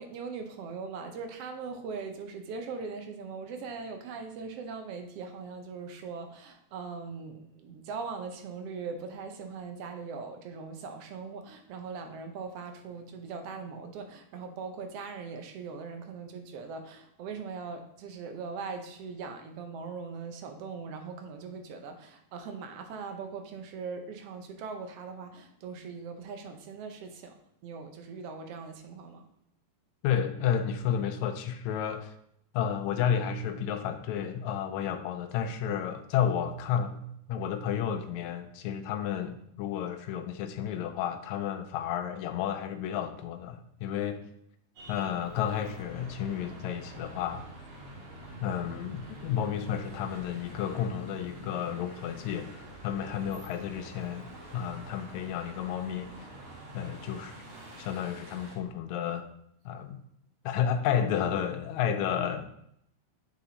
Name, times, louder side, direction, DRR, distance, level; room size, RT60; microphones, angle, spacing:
voice 1, 0.0-27.4 27.6-29.2, right 5 dB, 75° right, 6 dB, 1.4 m, -40 dB
voice 2, 30.0-32.1 32.5-37.0 37.3-44.2 44.9-47.4 48.4-52.5 52.8-54.3 54.5-56.1 56.7-57.3 57.8-59.3 59.7-60.0 60.5-62.5, left 8 dB, 75° left, 7 dB, 1.9 m, -31 dB
sound 1, 44.8-58.6, right 1 dB, 50° right, 2.1 m, -46 dB
8.3 x 4.7 x 4.0 m, 0.73 s
omnidirectional pair, 3.6 m